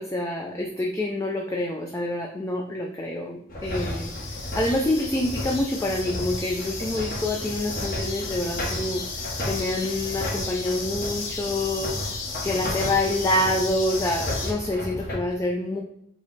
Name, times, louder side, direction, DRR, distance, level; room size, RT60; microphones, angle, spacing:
voice 1, 0.0-4.1 4.5-9.0 9.4-11.9 12.4-15.8, left 1 dB, 15° left, 0 dB, 0.3 m, -27 dB
sound 1, 3.5-15.2, left 1 dB, 50° left, 1.1 m, -34 dB
sound 2, 3.6-14.5, left 4 dB, 80° left, 0.8 m, -35 dB
4.8 x 2.1 x 4.0 m, 0.71 s
head